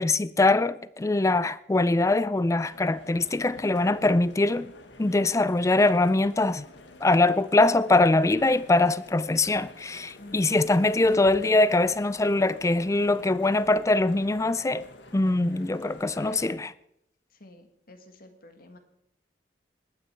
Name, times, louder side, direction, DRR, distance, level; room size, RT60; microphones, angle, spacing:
voice 1, 0.0-4.7 5.0-6.7 7.0-14.8 15.1-16.7, left 2 dB, 15° left, 0.4 m, -23 dB
sound 1, 2.7-16.6, left 2 dB, 75° left, 1.4 m, -49 dB
voice 2, 10.2-10.6 17.3-18.8, left 2 dB, 55° left, 1.8 m, -51 dB
20.0 x 9.4 x 4.5 m
head